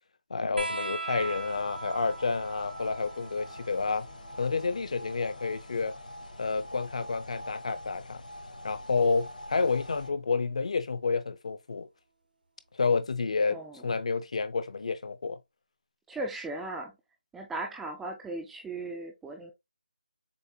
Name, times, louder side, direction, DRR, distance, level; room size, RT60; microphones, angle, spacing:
voice 1, 0.3-4.1 4.4-5.9 6.4-8.2 8.6-11.9 12.7-13.6 13.8-15.4, left 4 dB, 45° left, 0.6 m, -29 dB
sound 1, 0.6-7.6 9.0-9.8 11.1-11.2, right 3 dB, 85° right, 1.1 m, -42 dB
sound 2, 1.2-10.1, left 1 dB, 60° left, 1.0 m, -45 dB
voice 2, 13.5-14.0 16.1-16.9 17.3-19.5, right 2 dB, 5° right, 0.3 m, -37 dB
6.9 x 2.5 x 2.7 m
figure-of-eight pair, 170°, 5 cm